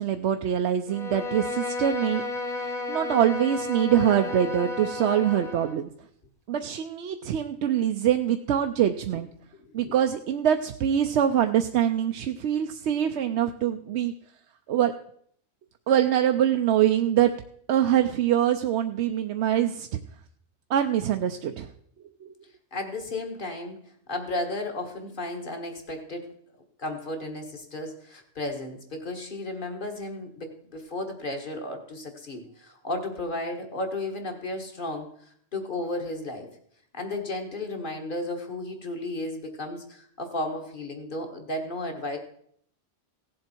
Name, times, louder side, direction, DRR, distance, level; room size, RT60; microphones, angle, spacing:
voice 1, 0.0-2.2 2.6-5.9 6.5-9.3 9.7-14.1 14.7-14.9 15.9-17.3 17.7-19.9 20.7-21.7 22.2-22.3, right 10 dB, 75° right, 7 dB, 0.9 m, -24 dB
Bowed string instrument, 0.9-5.8, left 2 dB, 5° left, 0.9 m, -32 dB
voice 2, 22.7-23.8 24.1-26.3 26.8-35.1 35.5-36.5 36.9-42.2, left 2 dB, 45° left, 4 dB, 1.8 m, -33 dB
16.5 x 7.6 x 4.4 m, 0.64 s
omnidirectional pair, 1.2 m